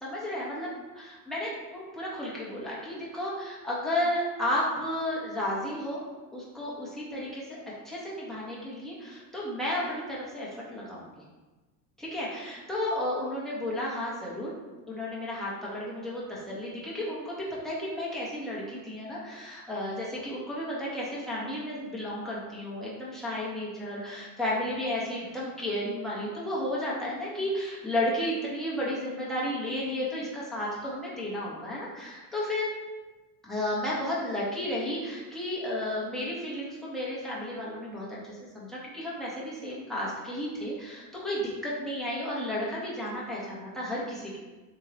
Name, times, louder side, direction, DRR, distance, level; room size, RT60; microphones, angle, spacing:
voice 1, 0.0-6.0 6.3-7.6 7.8-11.2 12.0-14.5 14.9-32.7 33.4-44.4, left 1 dB, ahead, -7 dB, 1.3 m, -33 dB
3.8 x 2.8 x 2.9 m, 1.2 s
hypercardioid pair, 75°, 47 cm